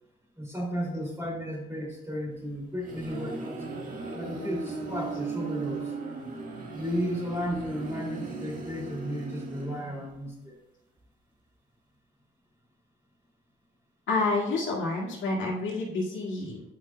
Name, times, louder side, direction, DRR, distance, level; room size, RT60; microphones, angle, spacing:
voice 1, 0.4-3.6 4.1-5.9 6.7-10.6, equal, 15° right, -3 dB, 2.5 m, -34 dB
sound 1, 2.5-10.2, right 3 dB, 40° right, 1.6 m, -37 dB
voice 2, 14.1-16.6, left 3 dB, 80° left, -4 dB, 2.0 m, -29 dB
9.3 x 5.8 x 2.2 m, 0.85 s
cardioid pair, 90°, 20 cm